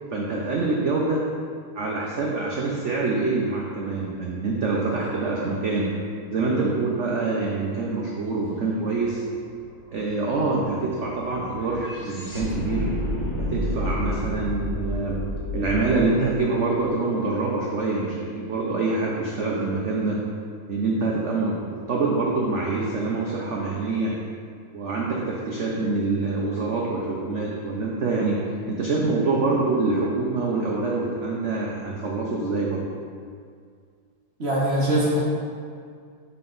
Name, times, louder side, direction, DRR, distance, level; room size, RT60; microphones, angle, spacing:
voice 1, 0.1-1.2 1.7-5.9 6.3-9.2 9.9-12.9 13.4-15.2 15.5-20.2 20.7-24.2 24.7-28.4 28.7-32.9, right 3 dB, 75° right, -3 dB, 0.6 m, -25 dB
sound 1, 8.9-9.0 9.3-17.5, left 1 dB, 55° left, 1.7 m, -31 dB
voice 2, 34.4-35.2, right 1 dB, 40° right, -5 dB, 1.1 m, -22 dB
5.9 x 5.5 x 3.9 m, 2.2 s
omnidirectional pair, 2.1 m